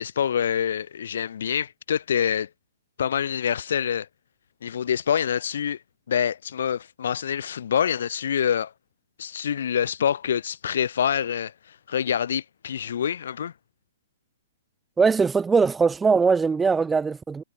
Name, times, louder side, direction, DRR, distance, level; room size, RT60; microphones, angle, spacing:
voice 1, 0.0-2.5 3.0-4.1 4.6-5.8 6.1-8.7 9.2-13.5, left 8 dB, 70° left, 2.3 m, -26 dB
voice 2, 15.0-17.4, right 5 dB, 10° right, 1.5 m, -21 dB
hypercardioid pair, 140°, 0 cm